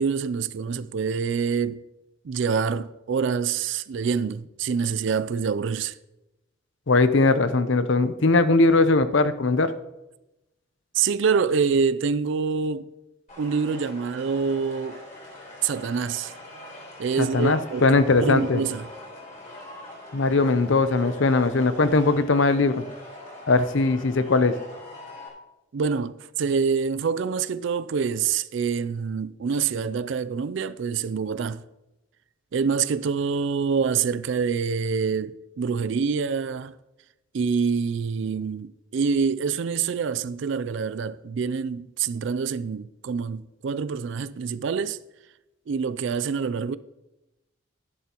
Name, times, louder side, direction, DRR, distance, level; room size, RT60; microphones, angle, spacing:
voice 1, 0.0-1.8 2.2-6.0 10.9-12.9 13.4-15.0 15.6-16.3 17.0-18.9 25.7-31.6 32.5-36.7 37.3-45.0 45.7-46.8, right 5 dB, 60° right, 0.3 m, -26 dB
voice 2, 6.9-9.7 17.2-18.6 20.1-22.8 23.5-24.6, left 3 dB, 65° left, 0.7 m, -20 dB
sound 1, 13.3-25.3, left 1 dB, 35° left, 4.5 m, -42 dB
13.5 x 11.0 x 3.0 m
head